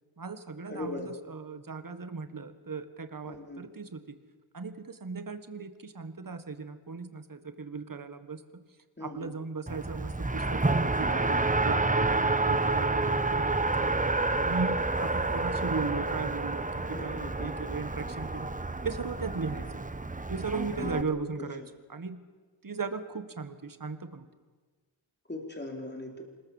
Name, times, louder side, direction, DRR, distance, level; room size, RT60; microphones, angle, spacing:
voice 1, 0.2-4.2 4.5-8.4 9.0-13.9 14.4-18.5 18.8-19.6 20.3-21.6 21.9-22.2 22.6-24.3, right 4 dB, 45° right, 10 dB, 1.7 m, -37 dB
voice 2, 0.7-1.1 3.2-3.6 9.0-9.3 16.9-17.5 20.7-21.5 25.3-26.2, left 1 dB, 20° left, 2 dB, 4.3 m, -39 dB
Race car auto racing, 9.7-21.0, right 2 dB, 15° right, 1.0 m, -29 dB
26.5 x 21.0 x 7.3 m, 1.4 s
wide cardioid pair, 100°, 47 cm